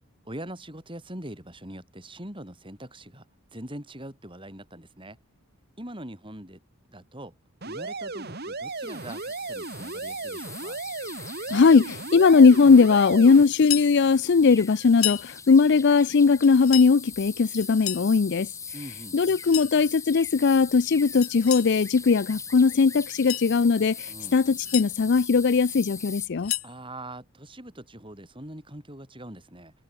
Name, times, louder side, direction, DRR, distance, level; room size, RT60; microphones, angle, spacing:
voice 1, 0.2-3.2 3.5-5.2 5.8-6.6 6.9-7.4 7.6-10.8 18.7-19.2 24.1-24.4 26.6-29.7, right 1 dB, 25° right, 6.6 m, -42 dB
sound 1, 7.6-13.4, right 3 dB, 45° right, 1.9 m, -35 dB
sound 2, 8.7-26.3, left 5 dB, 15° left, 1.0 m, -41 dB
voice 2, 11.5-18.5 19.1-26.5, left 5 dB, 50° left, 0.4 m, -19 dB
sound 3, 13.5-13.9 14.9-15.3 16.4-16.9 17.6-18.1 19.3-19.7 21.2-21.7 23.0-23.5 24.4-24.9 26.2-26.7, left 15 dB, 75° left, 2.0 m, -32 dB
head